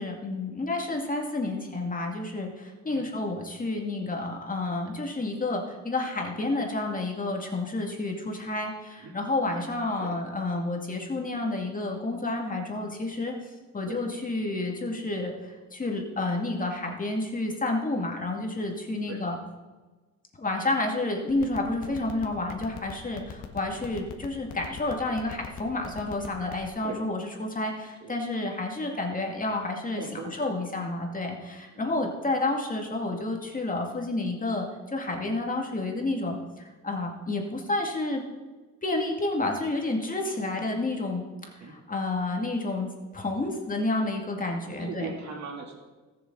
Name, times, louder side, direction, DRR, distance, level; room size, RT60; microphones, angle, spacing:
voice 1, 0.0-13.3 13.7-15.3 15.7-19.3 20.4-30.0 30.4-38.2 38.8-41.2 41.6-45.1, left 2 dB, 25° left, 1 dB, 2.2 m, -30 dB
sound 1, 21.3-26.7, left 8 dB, 90° left, 1.5 m, -38 dB
voice 2, 30.0-30.5 31.7-31.9 32.3-32.4 37.4-37.5 41.6-41.8 44.8-45.7, right 4 dB, 65° right, 0 dB, 3.0 m, -39 dB
19.0 x 6.9 x 3.9 m, 1.3 s
cardioid pair, 90°, 30 cm